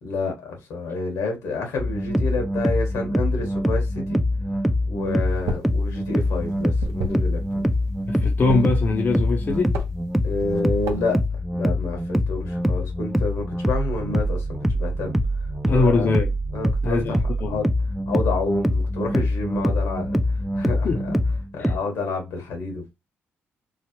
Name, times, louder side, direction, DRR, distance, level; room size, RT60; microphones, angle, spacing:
voice 1, 0.0-4.2 4.9-7.6 10.2-11.2 11.5-16.1 16.5-17.2 17.5-17.7 18.1-21.1 21.5-22.9, left 3 dB, 85° left, 1.3 m, -29 dB
sound 1, 1.8-21.8, equal, 5° right, 0.4 m, -24 dB
sound 2, 5.3-5.8 6.0-7.6 8.1-9.2 9.5-9.9 10.4-11.2, right 2 dB, 90° right, 0.6 m, -30 dB
voice 2, 8.1-9.8 15.6-16.3 16.8-17.6 20.8-21.0 21.6-21.7, left 3 dB, 45° left, 0.5 m, -22 dB
3.1 x 2.0 x 2.9 m
cardioid pair, 70°, 5 cm